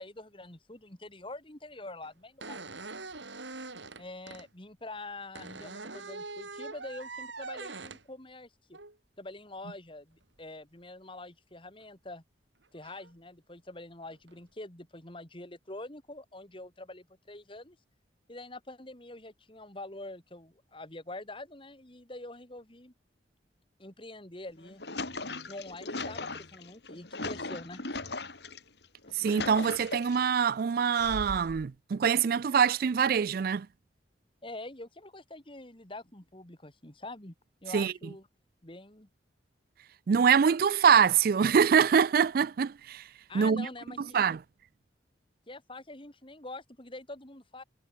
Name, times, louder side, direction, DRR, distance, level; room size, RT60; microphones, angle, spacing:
voice 1, 0.0-2.6 4.0-8.8 9.2-12.2 12.7-17.8 18.3-22.9 23.8-24.8 25.5-27.8 34.4-37.3 37.6-38.3 38.6-39.1 43.3-44.2 45.5-47.6, left 2 dB, 30° left, 2.8 m, -45 dB
sound 1, 2.0-2.1 2.4-4.5 5.3-8.0 8.7-8.9 11.8-11.9 12.8-13.1 14.1-14.4, right 3 dB, 85° right, 6.2 m, -43 dB
sound 2, 24.5-28.6 29.0-30.3 30.9-31.7, left 3 dB, 65° left, 4.6 m, -38 dB
voice 2, 29.1-33.7 37.7-37.9 40.1-43.1 43.3-43.7 44.1-44.4, right 7 dB, 50° right, 0.4 m, -24 dB
head